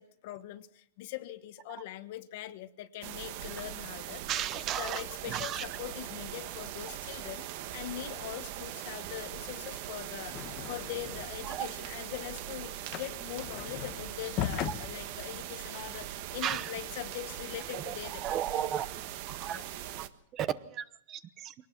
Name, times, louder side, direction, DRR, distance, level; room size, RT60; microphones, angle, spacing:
voice 1, 0.0-10.4 10.7-18.2 19.5-19.6, left 14 dB, 50° left, 12 dB, 1.3 m, -42 dB
sound 1, 3.0-20.1, right 12 dB, 50° right, 1.3 m, -41 dB
voice 2, 4.3-5.0 5.3-5.7 11.4-11.7 16.4-16.7 17.7-17.9 18.2-18.9 19.3-19.6 20.3-21.5, right 10 dB, 25° right, 16 dB, 0.9 m, -34 dB
sound 2, 10.3-11.5 11.8-16.4, left 11 dB, 35° left, 1.1 m, -39 dB
23.5 x 18.5 x 5.9 m, 0.69 s
supercardioid pair, 155°, 0 cm